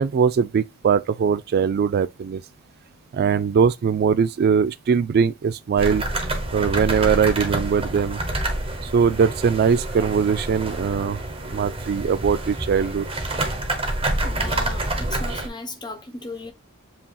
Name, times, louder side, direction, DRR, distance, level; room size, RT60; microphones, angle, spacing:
voice 1, 0.0-2.4 3.1-6.0 6.5-8.2 8.8-11.2 11.5-13.1, right 6 dB, 45° right, 0.3 m, -21 dB
sound 1, 5.8-15.5, right 1 dB, 25° right, 1.1 m, -27 dB
voice 2, 14.2-16.5, left 2 dB, 20° left, 0.9 m, -36 dB
7.5 x 2.7 x 2.3 m
head